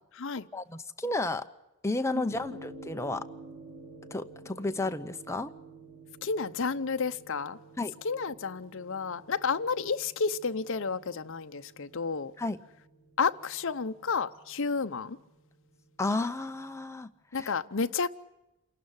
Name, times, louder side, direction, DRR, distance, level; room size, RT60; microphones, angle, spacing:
voice 1, 0.5-1.5 1.8-3.3 4.1-5.5 7.8-7.9 12.4-12.6 16.0-17.5, left 2 dB, 10° left, 0.7 m, -32 dB
sound 1, 2.3-16.8, right 2 dB, 20° right, 2.5 m, -51 dB
voice 2, 6.2-7.6 8.0-12.3 13.2-15.2 17.3-18.1, left 5 dB, 60° left, 0.7 m, -31 dB
28.0 x 12.0 x 9.7 m
head